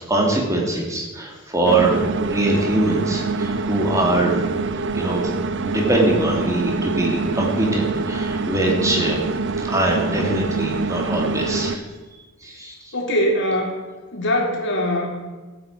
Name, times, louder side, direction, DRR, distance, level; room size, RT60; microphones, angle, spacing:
voice 1, 0.1-4.4 4.9-5.3 5.6-9.2 9.7-11.8 12.4-12.9, right 2 dB, 15° right, -1 dB, 3.0 m, -22 dB
sound 1, 1.6-11.8, right 3 dB, 55° right, 0.8 m, -25 dB
voice 2, 12.9-13.8 14.1-15.1, equal, 55° left, 0 dB, 3.5 m, -22 dB
14.5 x 8.9 x 7.5 m, 1.3 s
head